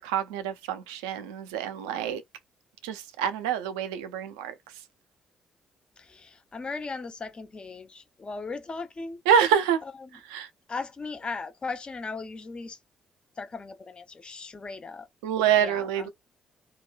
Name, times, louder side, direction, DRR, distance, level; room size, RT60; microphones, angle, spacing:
voice 1, 0.0-2.2 2.8-4.5 9.3-9.8 10.3-10.5 15.2-16.1, right 8 dB, 85° right, 0.4 m, -26 dB
voice 2, 6.0-9.5 10.0-10.1 10.7-12.8 13.4-15.1 15.5-16.1, left 4 dB, 35° left, 0.7 m, -38 dB
2.8 x 2.2 x 2.3 m
hypercardioid pair, 45°, 3 cm